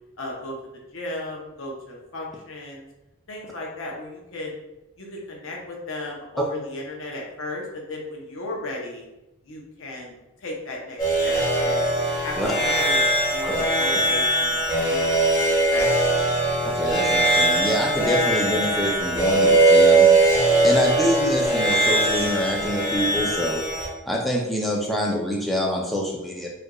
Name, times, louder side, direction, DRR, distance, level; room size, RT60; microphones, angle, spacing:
voice 1, 0.2-0.5 0.9-2.9 3.3-4.6 5.0-9.1 9.4-16.2, left 2 dB, 65° left, -1 dB, 0.7 m, -35 dB
sound 1, 11.0-23.9, right 2 dB, 20° left, 1.4 m, -20 dB
voice 2, 16.6-20.1 20.6-23.6 24.1-26.5, equal, ahead, -3 dB, 0.4 m, -26 dB
4.4 x 2.5 x 2.3 m, 0.96 s
head